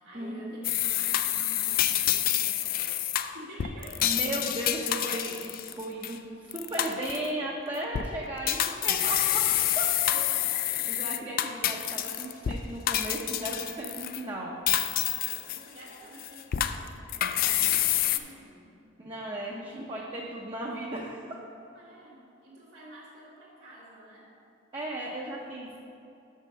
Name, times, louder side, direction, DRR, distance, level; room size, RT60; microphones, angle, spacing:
voice 1, 0.0-4.2 10.0-11.4 15.2-18.8 19.6-20.0 21.7-24.3, right 1 dB, 80° right, -11 dB, 1.7 m, -49 dB
sound 1, 0.6-6.2 6.5-7.3 7.8-8.1 8.5-12.6 12.9-14.2 14.7-15.9 16.2-18.2, left 12 dB, 50° left, 0.3 m, -28 dB
voice 2, 4.0-9.4 9.8-9.9 10.9-14.6 19.0-21.3 24.7-25.8, right 1 dB, 25° right, -4 dB, 0.7 m, -35 dB
6.5 x 5.5 x 6.3 m, 2.7 s
head